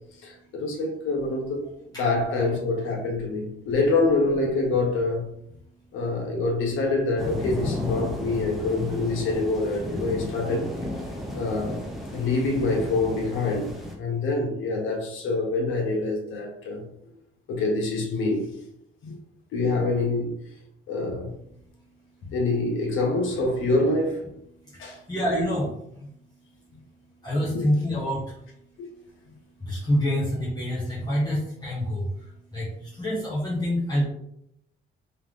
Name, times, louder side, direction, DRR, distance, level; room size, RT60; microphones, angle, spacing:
voice 1, 0.2-1.6 1.9-5.2 5.9-10.7 11.3-11.8 12.1-13.7 14.0-16.8 17.5-18.5 19.0-19.2 19.5-20.3 20.9-21.3 22.3-24.3 24.8-25.0 27.5-27.6 28.8-28.9, left 3 dB, 80° left, 1.3 m, -25 dB
sound 1, 7.2-14.0, left 1 dB, ahead, 1.3 m, -34 dB
voice 2, 25.1-25.7 26.0-26.1 27.2-28.4 29.7-34.0, equal, 20° left, 1.4 m, -26 dB
3.4 x 3.4 x 3.7 m
cardioid pair, 90°, 20 cm